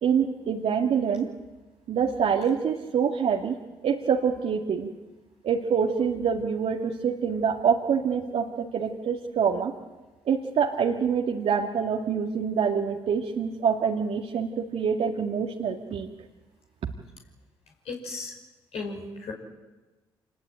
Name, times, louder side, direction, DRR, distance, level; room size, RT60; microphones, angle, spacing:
voice 1, 0.0-1.3 1.9-3.6 3.8-4.9 5.4-9.7 10.3-16.1, right 7 dB, 60° right, 1 dB, 2.0 m, -26 dB
voice 2, 17.9-18.3 18.7-19.3, left 3 dB, 65° left, 0 dB, 5.6 m, -35 dB
26.5 x 20.0 x 9.1 m, 1.2 s
hypercardioid pair, 45°, 12 cm